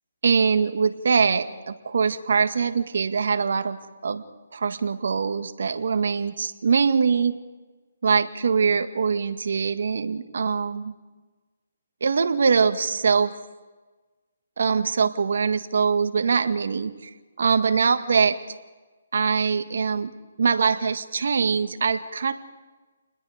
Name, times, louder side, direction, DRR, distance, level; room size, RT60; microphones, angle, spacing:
voice 1, 0.2-4.2 4.5-7.3 8.0-10.9 12.0-13.3 14.6-17.1 17.4-18.4 19.1-20.1 20.4-22.3, right 5 dB, 70° right, 8 dB, 1.7 m, -23 dB
30.0 x 20.5 x 5.1 m, 1.3 s
hypercardioid pair, 155°, 0 cm